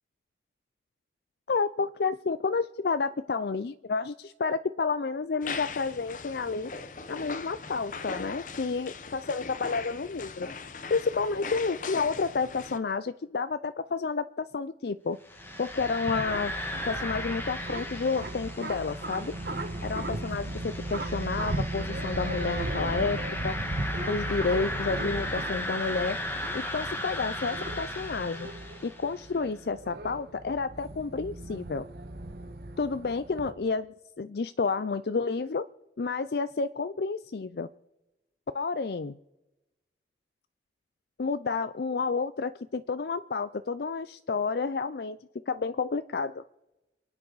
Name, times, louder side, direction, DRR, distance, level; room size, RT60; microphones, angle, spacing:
voice 1, 1.5-6.7 7.1-10.5 10.9-15.2 15.6-16.5 16.9-19.3 19.8-23.6 24.1-26.2 26.5-28.5 28.8-31.9 32.8-33.9 34.2-35.6 36.0-37.7 38.5-39.1 41.2-46.4, left 4 dB, 65° left, 12 dB, 0.5 m, -30 dB
sound 1, 5.4-12.8, left 5 dB, 45° left, 0.8 m, -40 dB
sound 2, 15.2-29.2, left 1 dB, 15° left, 1.4 m, -37 dB
sound 3, 15.4-33.5, right 1 dB, 60° right, 1.3 m, -36 dB
27.5 x 9.6 x 4.0 m, 0.98 s
head